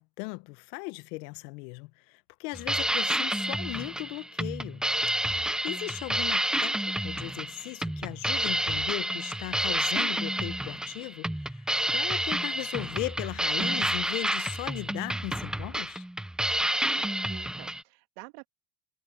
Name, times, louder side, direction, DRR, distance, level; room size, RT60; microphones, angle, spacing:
voice 1, 0.0-4.8 5.6-11.6 11.9-16.0, left 26 dB, 70° left, 1.3 m, -37 dB
sound 1, 2.5-17.8, right 1 dB, ahead, 0.4 m, -29 dB
voice 2, 17.0-18.5, right 26 dB, 70° right, 2.3 m, -49 dB
supercardioid pair, 100°, 49 cm